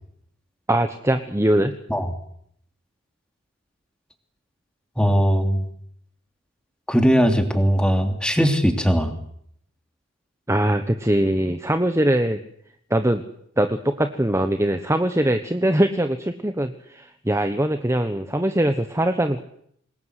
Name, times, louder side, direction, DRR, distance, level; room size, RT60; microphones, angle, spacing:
voice 1, 0.7-1.7 10.5-12.4 12.9-13.2 13.6-19.4, right 1 dB, 15° right, 8 dB, 1.2 m, -22 dB
voice 2, 5.0-5.6 6.9-9.1, equal, 5° left, 6 dB, 3.1 m, -19 dB
26.5 x 21.0 x 8.3 m, 0.69 s
head